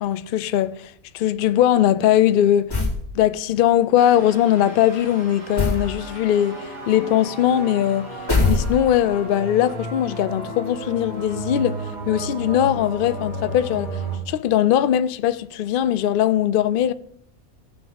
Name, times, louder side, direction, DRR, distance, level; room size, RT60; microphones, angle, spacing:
voice 1, 0.0-2.8 3.1-8.2 8.5-11.8 12.1-14.0 14.3-16.9, left 11 dB, 80° left, 0.4 m, -20 dB
sound 1, 2.7-3.1 5.6-5.9 8.3-9.1, left 3 dB, 15° left, 2.0 m, -21 dB
sound 2, 4.0-14.2, right 1 dB, 80° right, 6.1 m, -34 dB
16.5 x 6.0 x 3.9 m
omnidirectional pair, 1.5 m